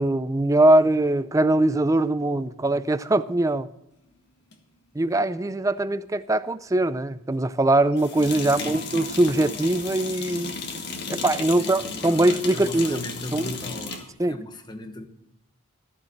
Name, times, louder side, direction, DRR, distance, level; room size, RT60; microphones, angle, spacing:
voice 1, 0.0-3.7 5.0-10.6 11.1-13.0 13.3-13.5 14.2-14.4, right 1 dB, 15° right, 0.4 m, -22 dB
sound 1, 4.5-4.6 8.0-14.1, left 4 dB, 50° left, 1.8 m, -34 dB
voice 2, 8.4-8.9 11.6-15.1, left 2 dB, 20° left, 1.1 m, -38 dB
14.0 x 7.3 x 7.8 m
head